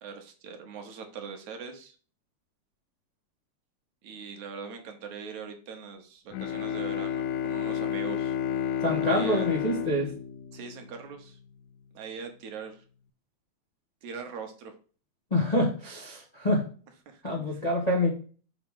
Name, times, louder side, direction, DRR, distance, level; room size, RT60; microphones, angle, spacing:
voice 1, 0.0-2.0 4.0-8.4 9.1-9.5 10.5-11.4 11.9-12.8 14.0-14.7 17.1-17.6, right 6 dB, 70° right, 4 dB, 2.3 m, -41 dB
Bowed string instrument, 6.3-11.3, left 9 dB, 80° left, 1.9 m, -31 dB
voice 2, 8.8-10.1 15.3-16.6 17.2-18.1, left 1 dB, 35° left, -2 dB, 0.6 m, -26 dB
6.2 x 5.8 x 3.7 m, 0.39 s
omnidirectional pair, 3.7 m